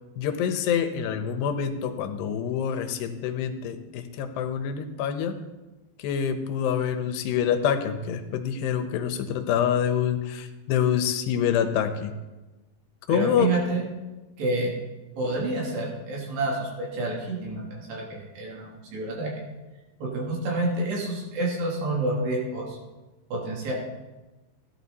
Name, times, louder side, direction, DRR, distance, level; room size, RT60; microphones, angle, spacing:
voice 1, 0.2-5.4 6.0-12.1 13.1-13.5, left 8 dB, 90° left, 8 dB, 3.1 m, -26 dB
voice 2, 13.1-13.8 14.4-14.7 15.2-19.3 20.0-22.8 23.3-23.7, right 2 dB, 85° right, -3 dB, 5.3 m, -28 dB
16.0 x 11.5 x 4.2 m, 1.1 s
omnidirectional pair, 4.7 m